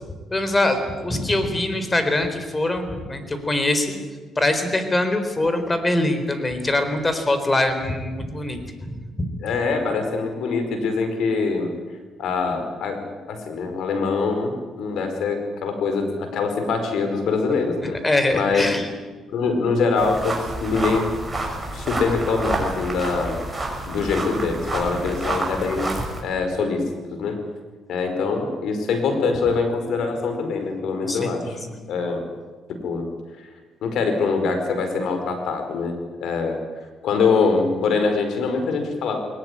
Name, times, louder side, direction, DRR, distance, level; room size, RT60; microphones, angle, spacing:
voice 1, 0.3-3.9 4.4-8.6 9.2-9.3 18.0-18.9 31.0-31.8, left 1 dB, 20° left, 8 dB, 4.2 m, -23 dB
voice 2, 9.4-11.7 12.2-13.0 13.3-18.0 18.3-18.6 19.3-21.1 21.7-23.4 23.9-26.0 26.2-27.4 27.9-31.6 31.9-32.2 32.8-33.1 33.8-36.6 37.0-39.2, left 4 dB, 75° left, 7 dB, 4.8 m, -23 dB
sound 1, 20.0-26.2, right 2 dB, 10° right, 6.4 m, -29 dB
21.0 x 19.5 x 10.0 m, 1.4 s
cardioid pair, 90°, 0 cm